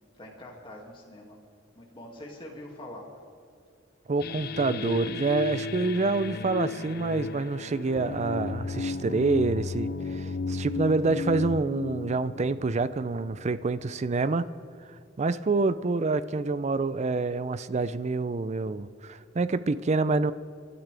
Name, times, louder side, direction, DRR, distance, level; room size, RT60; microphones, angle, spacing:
voice 1, 0.2-1.4 1.8-3.2, left 1 dB, 25° left, -1 dB, 2.3 m, -44 dB
voice 2, 4.1-14.5 15.2-20.3, right 3 dB, 35° right, 15 dB, 0.5 m, -27 dB
sound 1, 4.2-13.6, left 3 dB, 55° left, 0.5 m, -34 dB
27.5 x 12.5 x 3.4 m, 2.4 s
head